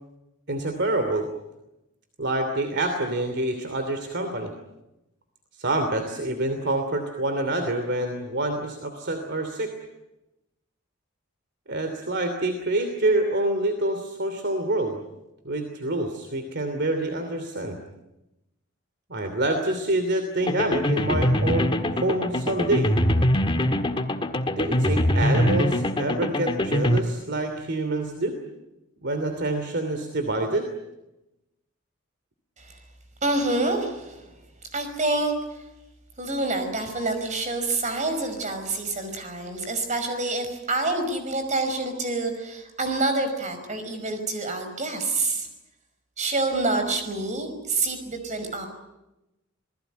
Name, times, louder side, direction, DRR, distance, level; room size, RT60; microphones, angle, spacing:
voice 1, 0.5-1.3 2.2-4.5 5.6-9.7 11.7-15.0 15.4-17.8 19.1-22.9 24.6-28.3 29.0-30.7, right 2 dB, 55° right, 6 dB, 2.9 m, -26 dB
sound 1, 20.4-27.0, left 1 dB, 25° left, 1.6 m, -23 dB
voice 2, 33.2-34.3 34.7-35.3 36.2-45.5 46.2-48.7, right 2 dB, 35° right, 7 dB, 5.4 m, -27 dB
27.5 x 20.0 x 9.2 m, 0.95 s
head